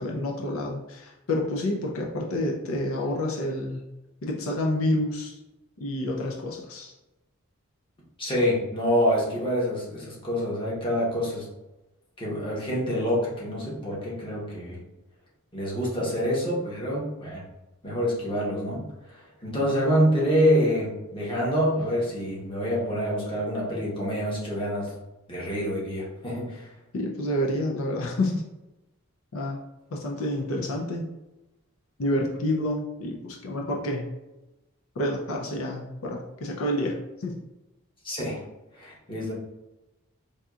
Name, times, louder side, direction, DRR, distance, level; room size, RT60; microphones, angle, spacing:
voice 1, 0.0-3.9 4.2-5.4 5.8-6.9 26.9-28.4 29.3-29.6 29.9-31.1 32.0-34.0 35.0-37.4, left 1 dB, 80° left, 0 dB, 0.5 m, -28 dB
voice 2, 8.2-11.5 12.2-14.8 15.5-17.4 17.8-24.9 25.3-26.7 38.0-38.4 38.7-39.3, equal, 25° left, -5 dB, 1.0 m, -26 dB
4.6 x 2.7 x 2.4 m, 1.0 s
head